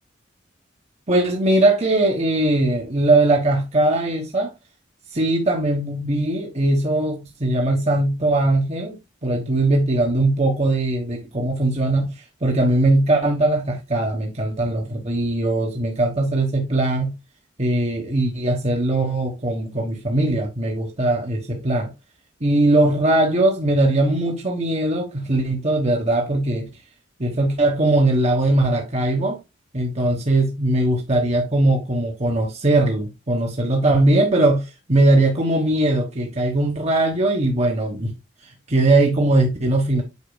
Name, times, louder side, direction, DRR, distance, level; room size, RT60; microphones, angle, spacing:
voice 1, 1.1-4.5 5.1-17.1 17.6-21.9 22.4-26.7 27.2-29.4 29.7-38.1 38.4-40.0, right 2 dB, 35° right, 1.2 m, -20 dB
8.4 x 5.8 x 2.2 m
head